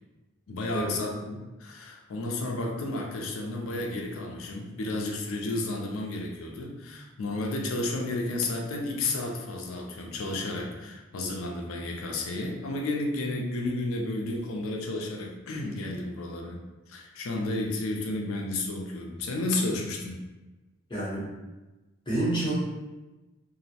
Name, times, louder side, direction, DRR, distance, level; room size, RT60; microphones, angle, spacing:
voice 1, 0.5-16.6 16.9-20.2, left 2 dB, 70° left, 1 dB, 0.4 m, -32 dB
voice 2, 20.9-21.3 22.1-22.6, right 1 dB, 25° left, -8 dB, 0.8 m, -28 dB
2.5 x 2.0 x 2.7 m, 1.1 s
head